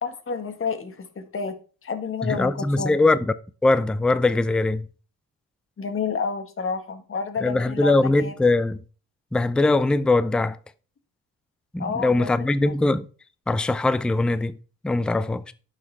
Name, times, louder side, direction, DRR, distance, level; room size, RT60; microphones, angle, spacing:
voice 1, 0.0-1.5 1.8-3.0 5.8-8.3 11.8-12.7, left 5 dB, 35° left, 1.6 m, -30 dB
voice 2, 2.2-3.2 3.6-4.8 7.4-8.8 9.3-10.6 11.7-13.1 13.5-14.6 14.8-15.5, left 2 dB, 5° left, 0.4 m, -21 dB
10.5 x 6.5 x 3.4 m
cardioid pair, 95°, 36 cm